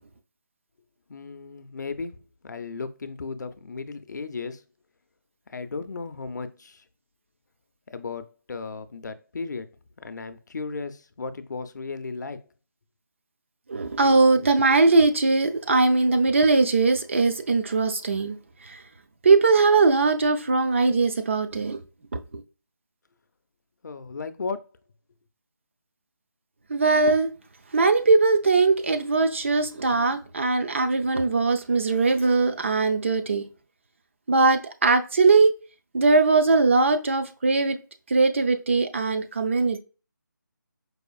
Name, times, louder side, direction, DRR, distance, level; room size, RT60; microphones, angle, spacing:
voice 1, 1.1-4.6 5.5-6.8 7.9-9.7 10.0-12.4 23.8-24.7, left 4 dB, 60° left, 0.4 m, -35 dB
voice 2, 13.7-18.8 19.2-21.8 22.1-22.4 26.7-27.3 27.7-33.4 34.3-35.5 35.9-37.8 38.1-39.8, right 3 dB, 40° right, 0.4 m, -20 dB
4.8 x 2.4 x 2.3 m
figure-of-eight pair, 170°, 11 cm